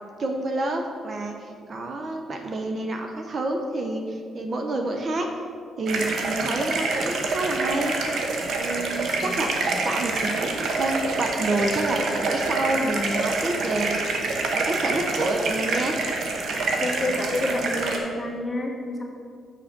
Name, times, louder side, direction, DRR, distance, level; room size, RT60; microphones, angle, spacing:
voice 1, 0.2-5.3 5.8-7.9 8.6-9.5 9.8-14.0 14.5-16.0, right 2 dB, 45° right, 3 dB, 0.7 m, -28 dB
sound 1, 5.9-18.0, right 3 dB, 65° right, 1.0 m, -27 dB
voice 2, 16.8-19.0, left 1 dB, 10° left, -1 dB, 1.4 m, -29 dB
6.2 x 5.0 x 5.8 m, 2.2 s
cardioid pair, 90°, 0 cm